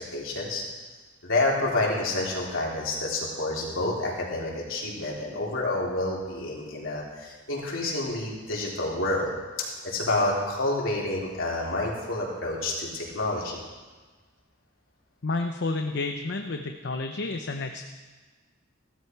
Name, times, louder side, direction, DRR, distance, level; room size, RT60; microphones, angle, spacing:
voice 1, 0.1-0.6 1.2-9.3 9.6-13.6, left 2 dB, 75° left, -4 dB, 3.8 m, -28 dB
voice 2, 15.2-17.8, left 3 dB, 60° left, 5 dB, 0.7 m, -30 dB
16.5 x 13.0 x 4.7 m, 1.3 s
head